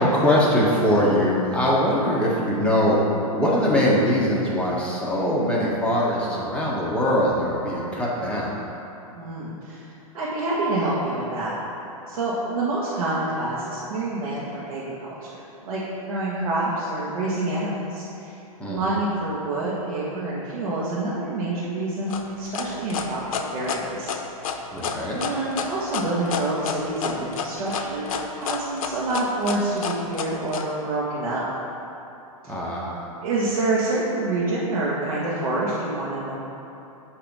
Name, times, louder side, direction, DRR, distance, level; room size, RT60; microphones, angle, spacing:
voice 1, 0.0-3.0 3.3-8.6 18.6-19.0 24.7-25.2 32.5-33.1, equal, 5° left, -7 dB, 1.2 m, -22 dB
voice 2, 9.1-9.9 10.1-11.5 12.0-15.4 15.6-18.4 18.7-24.1 25.1-31.4 32.4-32.5 33.2-36.4, right 2 dB, 75° right, -8 dB, 1.2 m, -27 dB
sound 1, 22.1-30.6, left 7 dB, 65° left, 0.6 m, -29 dB
8.2 x 2.9 x 5.4 m, 2.9 s
hypercardioid pair, 115°, 19 cm